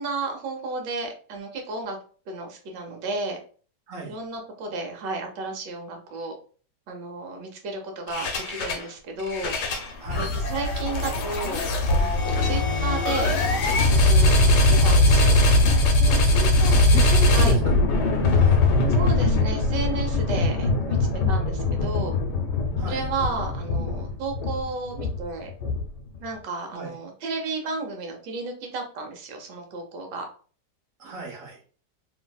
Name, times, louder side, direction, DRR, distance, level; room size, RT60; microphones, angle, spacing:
voice 1, 0.0-2.0 2.3-3.4 4.1-6.4 6.9-9.6 10.2-13.8 14.0-15.4 17.3-17.6 18.9-21.0 21.3-22.1 22.9-25.5 26.2-30.3, right 3 dB, 80° right, 3 dB, 1.4 m, -33 dB
voice 2, 3.9-4.2 10.0-10.3 16.0-17.8 18.3-18.6 22.8-23.0 26.7-26.9 31.0-31.6, right 3 dB, 55° right, -1 dB, 1.2 m, -35 dB
sound 1, 8.1-8.9 9.2-26.1, left 2 dB, 75° left, 1.2 m, -21 dB
3.1 x 2.6 x 2.3 m, 0.42 s
omnidirectional pair, 1.9 m